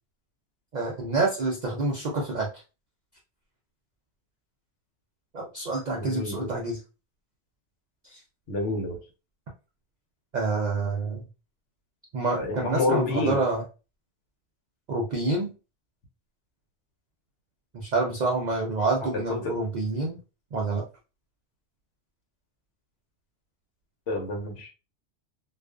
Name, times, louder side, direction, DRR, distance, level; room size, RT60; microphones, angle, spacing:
voice 1, 0.7-2.5 5.3-6.8 8.1-8.2 10.3-11.3 12.1-13.6 14.9-15.5 17.7-20.2 20.5-20.8, right 3 dB, 55° right, -1 dB, 0.5 m, -27 dB
voice 2, 6.0-6.5 8.5-9.0 12.4-13.4 19.0-19.5 24.1-24.7, left 2 dB, 90° left, 2 dB, 1.1 m, -28 dB
2.4 x 2.3 x 2.3 m, 0.32 s
omnidirectional pair, 1.2 m